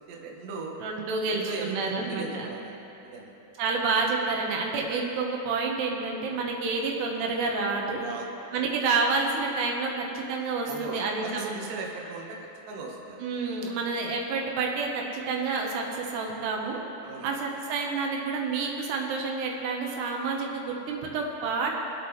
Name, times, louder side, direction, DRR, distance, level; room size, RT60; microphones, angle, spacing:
voice 1, 0.0-0.8 1.3-3.3 8.0-8.3 10.7-13.2 17.0-17.3, right 3 dB, 65° right, -2 dB, 2.7 m, -38 dB
voice 2, 0.8-2.5 3.6-8.0 8.5-11.5 13.2-16.8 17.2-21.7, right 4 dB, 85° right, 0 dB, 3.2 m, -29 dB
25.0 x 8.4 x 3.2 m, 2.9 s
omnidirectional pair, 4.7 m